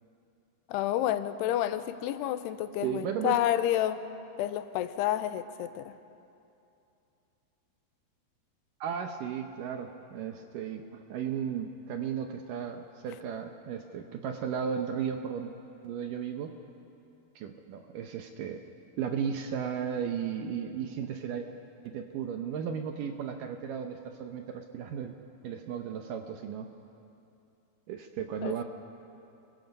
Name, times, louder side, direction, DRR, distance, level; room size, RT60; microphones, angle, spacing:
voice 1, 0.7-4.0 4.4-5.9 28.4-28.6, left 12 dB, 85° left, 12 dB, 2.8 m, -29 dB
voice 2, 2.8-3.4 8.8-10.8 11.1-15.5 15.8-16.5 17.4-18.6 19.0-21.5 21.8-25.1 25.4-26.7 27.9-28.6, right 8 dB, 70° right, 5 dB, 2.1 m, -35 dB
28.5 x 22.5 x 5.4 m, 2.7 s
omnidirectional pair, 4.7 m